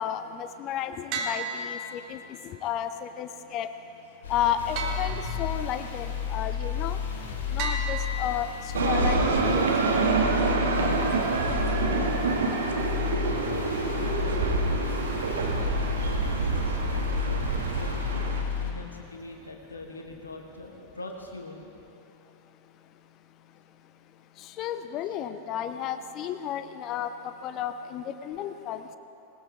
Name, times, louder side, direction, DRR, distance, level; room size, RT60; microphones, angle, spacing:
voice 1, 0.0-2.2 2.6-3.7 4.3-7.0 7.5-8.5 8.8-9.9 24.6-28.8, left 9 dB, 35° left, 10 dB, 0.6 m, -32 dB
sound 1, 1.1-2.4 4.8-5.8 7.6-8.8, right 2 dB, 40° right, 1.4 m, -34 dB
sound 2, 4.2-18.7, left 7 dB, 60° left, 2.5 m, -32 dB
sound 3, 8.7-18.4, right 4 dB, 65° right, 1.4 m, -27 dB
voice 2, 13.5-15.1 15.6-17.9 18.6-21.7, left 2 dB, 75° left, 2 dB, 1.3 m, -43 dB
20.0 x 19.0 x 3.6 m, 2.9 s
figure-of-eight pair, 90°, 0 cm